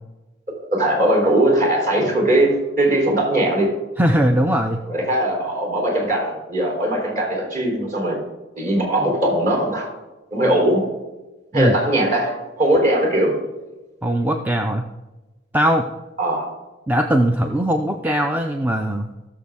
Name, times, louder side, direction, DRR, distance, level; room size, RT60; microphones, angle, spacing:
voice 1, 0.5-3.7 4.9-8.2 8.6-9.9 10.3-10.9 11.5-13.4 16.2-16.5, right 1 dB, 40° right, 0 dB, 3.8 m, -20 dB
voice 2, 4.0-4.8 11.5-11.8 14.0-14.8 15.5-15.9 16.9-19.1, equal, 10° right, 4 dB, 0.4 m, -20 dB
17.5 x 6.8 x 3.6 m, 1.1 s
head